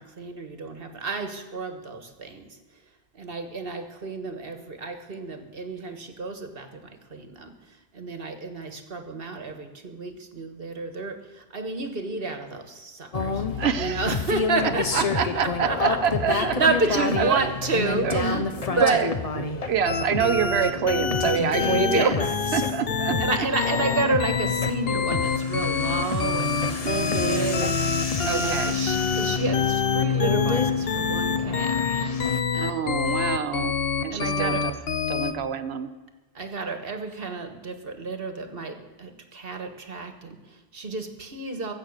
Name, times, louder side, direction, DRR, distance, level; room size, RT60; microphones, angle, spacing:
voice 1, 0.0-2.6 3.1-18.5 18.8-19.1 21.4-22.2 23.2-31.8 32.5-32.7 33.0-33.3 34.1-34.6 36.4-41.7, right 3 dB, 65° right, 6 dB, 1.7 m, -31 dB
sound 1, 13.1-32.4, left 5 dB, 40° left, 0.9 m, -28 dB
voice 2, 13.6-14.0 14.9-16.6 17.0-17.5 18.0-22.1 22.5-23.5 26.8-27.7 28.2-28.8 32.6-33.8 34.0-34.7 35.1-35.9, right 7 dB, 85° right, 8 dB, 1.1 m, -26 dB
sound 2, 19.9-35.3, left 5 dB, 70° left, 1.2 m, -27 dB
22.0 x 8.1 x 6.6 m, 1.2 s
omnidirectional pair, 1.1 m